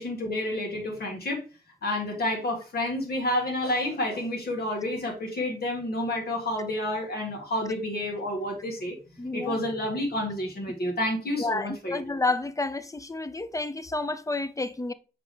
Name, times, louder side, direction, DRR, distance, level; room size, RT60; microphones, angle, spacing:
voice 1, 0.0-1.4 1.8-9.0 9.3-12.2, left 1 dB, 85° left, 2.0 m, -29 dB
voice 2, 9.2-9.6 11.4-14.9, left 3 dB, 20° left, 0.5 m, -30 dB
6.1 x 5.1 x 3.3 m
wide cardioid pair, 95°, 16 cm